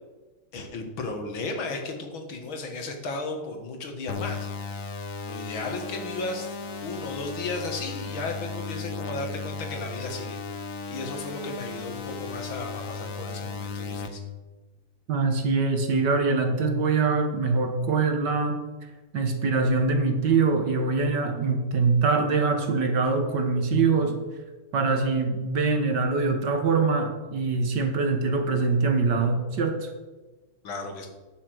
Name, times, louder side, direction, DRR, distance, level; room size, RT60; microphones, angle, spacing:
voice 1, 0.5-4.9 5.2-6.5 6.8-10.4 10.9-14.2 30.6-31.1, left 3 dB, 70° left, 4 dB, 2.5 m, -35 dB
sound 1, 4.1-14.1, left 4 dB, 50° left, 1.0 m, -35 dB
voice 2, 15.1-18.6 19.1-24.2 24.7-29.9, right 4 dB, 55° right, 5 dB, 1.8 m, -23 dB
11.0 x 6.8 x 7.8 m, 1.2 s
omnidirectional pair, 2.3 m